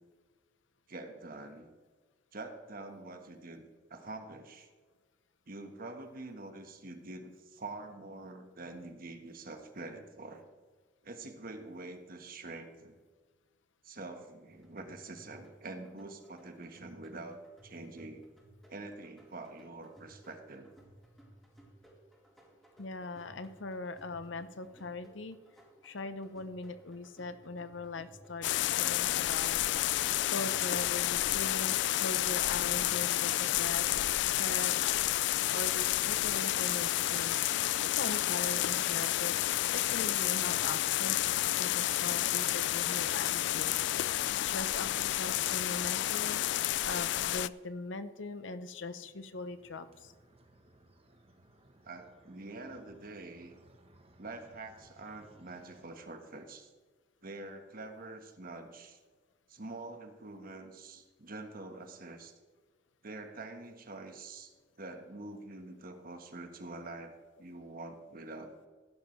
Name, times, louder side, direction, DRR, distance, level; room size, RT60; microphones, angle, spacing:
voice 1, 0.9-1.7 2.3-4.7 5.5-10.5 11.0-13.0 13.8-18.2 18.7-20.7 51.8-53.5 54.2-56.7 57.2-59.0 59.5-62.3 63.0-67.1 67.4-68.7, right 2 dB, 50° right, 6 dB, 1.4 m, -46 dB
sound 1, 14.5-34.2, right 1 dB, ahead, 3.9 m, -60 dB
voice 2, 22.8-25.4 25.8-29.6 30.3-33.9 34.2-35.0 35.5-37.6 38.0-39.4 39.7-43.7 44.3-50.1, left 3 dB, 90° left, 11 dB, 0.8 m, -41 dB
sound 2, 28.4-47.5, left 14 dB, 65° left, 0.3 m, -30 dB
sound 3, 49.0-55.9, right 1 dB, 35° right, 1.0 m, -62 dB
16.0 x 11.0 x 3.3 m, 1.4 s
head